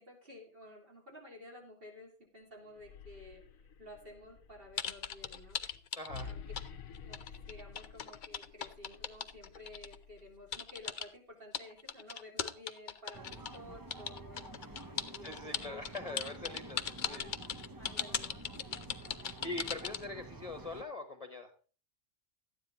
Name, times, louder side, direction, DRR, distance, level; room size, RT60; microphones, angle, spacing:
voice 1, 0.0-5.6 6.2-6.4 7.0-14.4 14.9-17.3 17.8-18.3, left 1 dB, 40° right, 0 dB, 3.7 m, -53 dB
sound 1, 2.7-10.8, left 6 dB, 80° left, 1.3 m, -51 dB
sound 2, 4.8-6.7 6.9-10.0 10.5-11.1 11.5-13.6 13.9-20.0, left 7 dB, 45° left, 0.7 m, -38 dB
voice 2, 6.0-6.3 15.2-17.3 19.4-21.5, left 2 dB, 30° left, 5 dB, 1.2 m, -42 dB
sound 3, 13.1-20.8, right 2 dB, 20° right, 0.7 m, -49 dB
13.0 x 9.8 x 4.0 m, 0.38 s
omnidirectional pair, 1.4 m